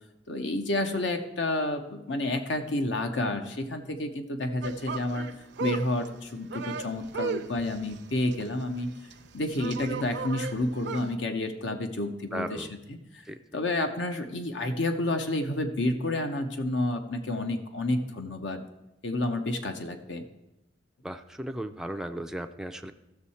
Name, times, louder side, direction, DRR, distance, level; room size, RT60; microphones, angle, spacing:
voice 1, 0.3-5.3 5.6-8.9 9.3-13.2 13.5-18.6 19.0-20.3, left 2 dB, 70° left, 5 dB, 0.8 m, -30 dB
sound 1, 4.6-11.2, right 4 dB, 60° right, 0.6 m, -36 dB
voice 2, 12.3-12.7 13.3-13.4 21.0-22.9, right 1 dB, 5° right, 6 dB, 0.4 m, -36 dB
15.0 x 6.4 x 4.2 m, 0.94 s
head